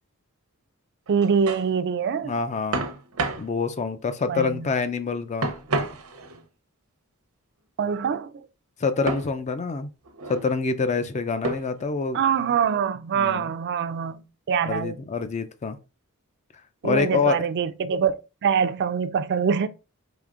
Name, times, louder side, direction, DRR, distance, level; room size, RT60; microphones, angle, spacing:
voice 1, 1.1-2.3 4.3-4.7 7.8-8.3 12.1-15.0 16.8-19.7, right 6 dB, 50° right, 0.4 m, -24 dB
sound 1, 1.1-1.7 2.7-3.5 5.4-6.4 9.1-9.3 10.0-10.5 11.4-11.9, right 2 dB, 90° right, 0.7 m, -30 dB
voice 2, 2.2-2.9 3.4-5.5 8.8-9.9 10.3-12.2 13.1-13.5 14.7-15.8 16.8-17.4, left 4 dB, 30° left, 0.4 m, -26 dB
4.9 x 3.0 x 2.5 m
head